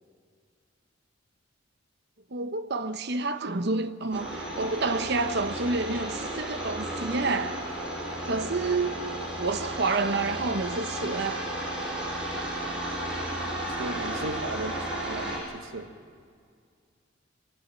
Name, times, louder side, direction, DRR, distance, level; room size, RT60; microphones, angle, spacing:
voice 1, 2.3-7.6 8.2-9.0 9.4-11.5, right 3 dB, 60° right, 1.0 m, -29 dB
sound 1, 4.1-15.4, right 1 dB, 5° right, 6.6 m, -33 dB
voice 2, 13.8-15.9, right 2 dB, 85° right, 1.6 m, -36 dB
22.5 x 19.5 x 8.9 m
head